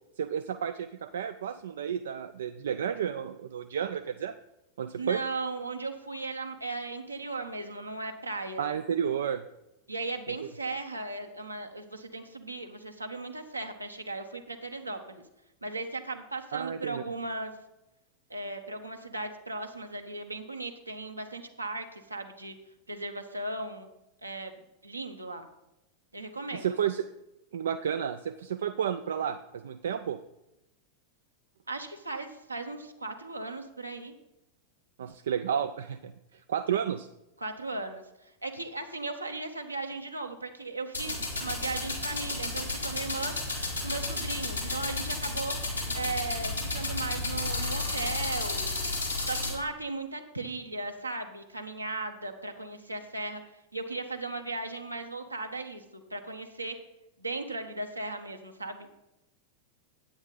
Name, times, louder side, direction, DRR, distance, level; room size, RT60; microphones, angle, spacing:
voice 1, 0.2-4.3 4.8-5.2 8.6-9.4 16.5-17.0 26.5-27.1 27.5-30.2 35.0-37.1, right 8 dB, 65° right, 9 dB, 0.4 m, -31 dB
voice 2, 5.0-8.6 9.9-15.2 15.6-17.5 18.3-22.5 22.9-23.9 24.2-25.5 26.1-26.7 31.7-34.1 37.4-38.0 38.4-43.4 43.8-45.5 45.9-48.9 49.3-53.4 53.7-56.8 57.2-58.9, right 2 dB, 85° right, 5 dB, 1.0 m, -37 dB
sound 1, 40.9-49.5, left 2 dB, 90° left, 2.5 m, -32 dB
9.9 x 8.8 x 3.9 m, 0.93 s
figure-of-eight pair, 90°, 0 cm